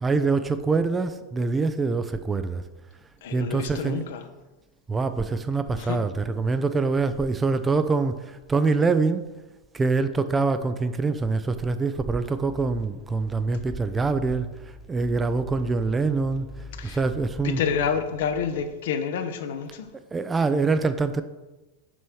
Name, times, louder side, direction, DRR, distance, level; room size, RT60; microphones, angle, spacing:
voice 1, 0.0-2.6 3.3-4.0 4.9-9.3 9.7-14.5 14.9-16.5 16.8-17.6 20.1-21.2, right 4 dB, 15° right, 10 dB, 0.5 m, -24 dB
voice 2, 3.2-4.2 5.7-6.0 16.8-17.0 17.4-19.9, left 7 dB, 65° left, 8 dB, 0.8 m, -28 dB
sound 1, 12.1-18.7, left 2 dB, 5° left, 1.2 m, -44 dB
6.1 x 5.5 x 4.7 m, 1.1 s
hypercardioid pair, 95°, 0 cm